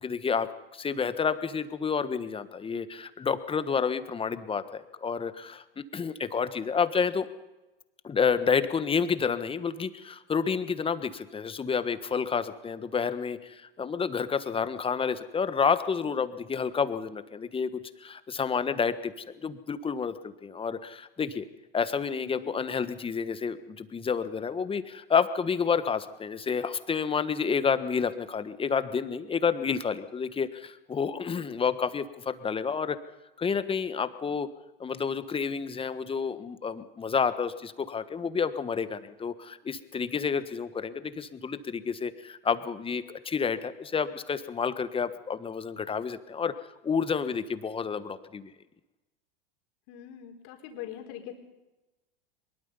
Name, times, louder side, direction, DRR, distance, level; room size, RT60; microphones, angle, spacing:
voice 1, 0.0-0.5 0.7-7.3 8.0-19.1 19.4-21.4 21.7-33.0 33.4-34.5 34.8-46.5 46.8-48.5, left 6 dB, 20° left, 12 dB, 1.4 m, -29 dB
voice 2, 22.2-22.5 31.2-31.5 49.9-51.3, left 11 dB, 55° left, 3 dB, 4.3 m, -43 dB
23.0 x 22.0 x 5.6 m, 1.0 s
hypercardioid pair, 95°, 29 cm